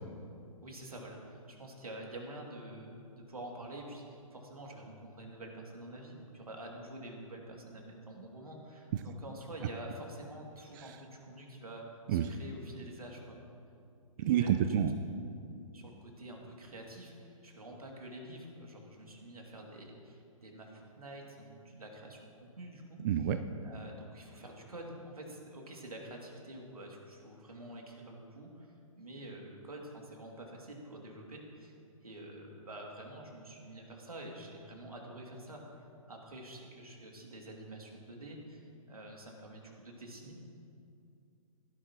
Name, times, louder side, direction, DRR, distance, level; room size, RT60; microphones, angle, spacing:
voice 1, 0.6-11.8 12.1-13.4 14.3-14.6 15.7-23.0 23.6-31.7 32.0-40.4, right 1 dB, 85° right, 0 dB, 2.4 m, -47 dB
voice 2, 14.2-14.9 23.0-23.4, right 10 dB, 35° right, 9 dB, 0.5 m, -29 dB
16.0 x 11.0 x 2.9 m, 2.5 s
figure-of-eight pair, 125°, 18 cm